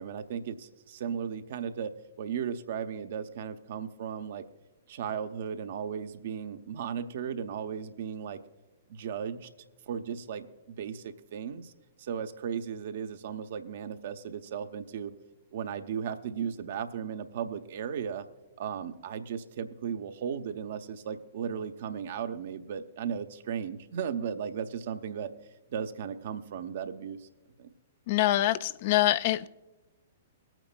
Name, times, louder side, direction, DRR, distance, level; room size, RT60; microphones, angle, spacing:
voice 1, 0.0-4.4 4.9-8.4 8.9-9.5 9.9-11.7 12.0-15.1 15.5-18.3 18.6-25.3 25.7-27.3 27.6-27.7, right 7 dB, 60° right, 9 dB, 0.6 m, -36 dB
voice 2, 28.1-29.5, left 15 dB, 50° left, 15 dB, 0.3 m, -25 dB
22.5 x 8.9 x 2.2 m, 1.1 s
figure-of-eight pair, 115°, 0 cm